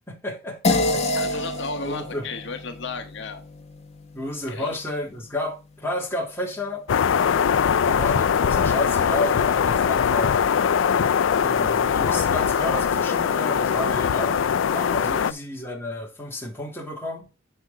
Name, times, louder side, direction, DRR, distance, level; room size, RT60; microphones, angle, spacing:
voice 1, 0.1-1.1 1.8-2.3 4.1-6.9 7.9-10.3 11.4-14.4 14.7-17.2, left 1 dB, 10° left, 2.1 m, -31 dB
sound 1, 0.6-5.4, left 2 dB, 35° left, 1.3 m, -28 dB
voice 2, 1.1-3.4 4.4-4.7 15.0-15.2, left 4 dB, 65° left, 1.0 m, -34 dB
sound 2, 6.9-15.3, left 7 dB, 85° left, 0.4 m, -21 dB
7.9 x 5.8 x 3.7 m
head